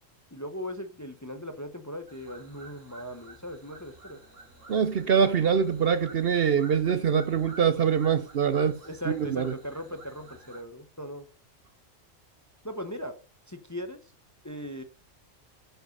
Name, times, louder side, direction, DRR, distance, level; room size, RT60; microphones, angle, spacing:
voice 1, 0.3-4.2 7.1-7.2 8.8-11.2 12.6-13.2 13.5-14.0 14.4-14.8, equal, 15° left, 0.8 m, -38 dB
sound 1, 2.1-10.6, right 3 dB, 75° right, 3.2 m, -50 dB
voice 2, 4.7-8.8 9.1-9.5, right 7 dB, 55° right, 0.8 m, -24 dB
9.2 x 6.9 x 5.2 m
omnidirectional pair, 1.3 m